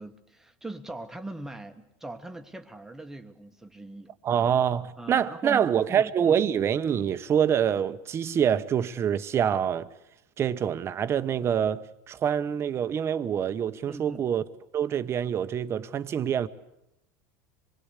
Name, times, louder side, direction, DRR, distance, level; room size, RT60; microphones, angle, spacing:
voice 1, 0.0-4.1 5.0-6.4 13.9-14.2, right 2 dB, 5° right, 1.4 m, -41 dB
voice 2, 4.2-9.9 10.4-14.4 14.7-16.5, right 8 dB, 30° right, 1.0 m, -26 dB
26.0 x 21.0 x 8.4 m
supercardioid pair, 130°, 9 cm